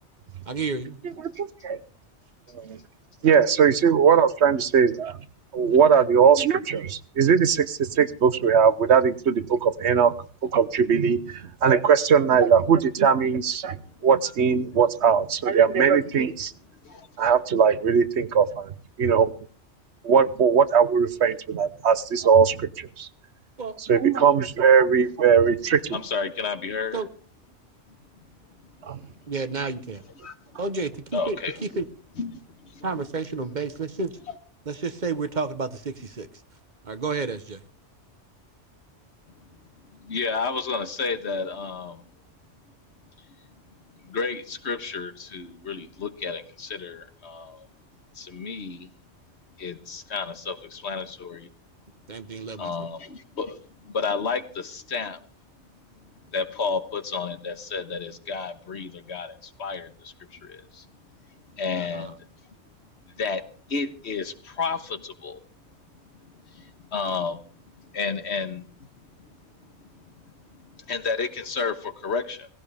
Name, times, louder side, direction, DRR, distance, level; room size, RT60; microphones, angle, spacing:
voice 1, 0.5-1.0 23.6-23.8 26.9-27.1 29.3-30.0 30.6-31.9 32.8-34.1 34.7-36.4 36.8-37.6 52.1-52.9 61.8-62.1, right 4 dB, 45° right, 11 dB, 1.2 m, -31 dB
voice 2, 1.4-1.8 2.5-2.8 3.2-5.2 5.5-10.1 10.4-13.8 14.0-16.5 17.2-18.7 19.0-19.3 20.0-23.1 23.9-26.0 28.9-29.0, right 7 dB, 75° right, 14 dB, 1.2 m, -20 dB
voice 3, 25.9-27.0 30.2-30.3 31.1-31.6 32.2-32.9 39.9-42.0 44.0-47.7 48.1-48.9 49.6-51.5 52.6-55.2 56.3-60.8 61.5-62.3 63.2-65.4 66.5-67.4 67.9-68.7 69.8-70.0 70.5-72.5, left 5 dB, 70° left, 10 dB, 1.6 m, -31 dB
18.0 x 16.5 x 3.5 m, 0.39 s
omnidirectional pair, 1.2 m